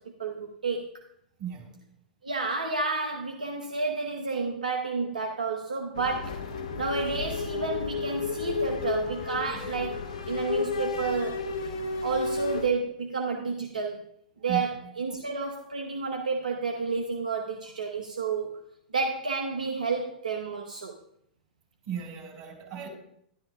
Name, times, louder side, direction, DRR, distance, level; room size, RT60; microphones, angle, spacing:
voice 1, 0.2-0.9 2.2-6.5 6.8-11.5 12.0-14.0 14.4-18.6 18.9-21.0, right 4 dB, 80° right, 2 dB, 0.9 m, -31 dB
voice 2, 1.4-1.8 14.5-14.8 21.8-22.9, right 8 dB, 45° right, 0 dB, 4.6 m, -36 dB
sound 1, 6.0-12.7, left 4 dB, 65° left, 1.1 m, -32 dB
13.0 x 11.0 x 2.4 m, 0.72 s
figure-of-eight pair, 95°, 4 cm